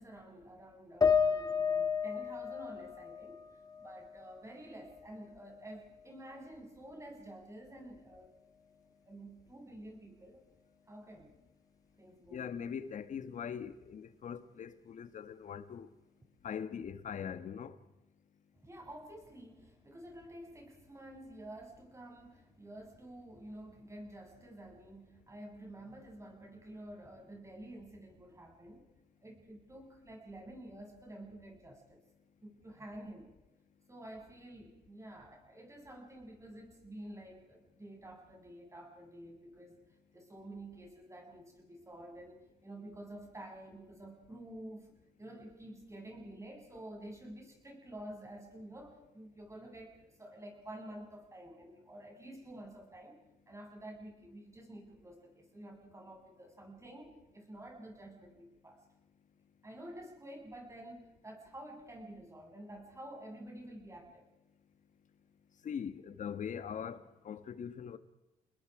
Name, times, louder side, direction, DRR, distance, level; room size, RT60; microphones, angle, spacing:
voice 1, 0.0-3.4 3.8-8.3 9.0-10.4 10.9-11.3 12.0-12.5 18.6-28.9 29.2-32.0 32.4-33.3 33.9-39.8 40.1-44.9 45.2-58.8 59.6-64.2, right 1 dB, 20° right, 7.8 m, -50 dB
sound 1, 1.0-4.4 4.8-5.8, left 6 dB, 25° left, 1.8 m, -33 dB
voice 2, 12.3-15.9 16.4-17.7 65.6-68.0, left 7 dB, 55° left, 1.6 m, -41 dB
29.5 x 20.5 x 5.0 m
supercardioid pair, 75°, 15 cm